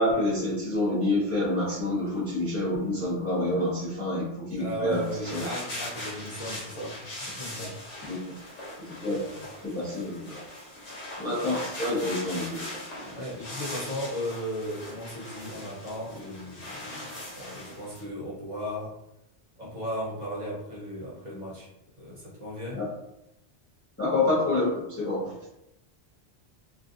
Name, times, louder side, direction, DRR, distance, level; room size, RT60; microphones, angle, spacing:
voice 1, 0.0-5.5 7.6-7.7 8.1-8.2 8.8-9.2 9.6-10.4 11.2-12.8 22.7-22.9 24.0-25.3, left 2 dB, 15° left, -9 dB, 0.7 m, -28 dB
voice 2, 4.5-7.8 9.3-9.4 13.0-18.9 19.6-21.7 22.0-22.8, equal, 45° right, -7 dB, 0.9 m, -36 dB
sound 1, 4.9-18.0, left 1 dB, 90° left, 1.1 m, -40 dB
2.5 x 2.4 x 2.4 m, 0.85 s
omnidirectional pair, 1.1 m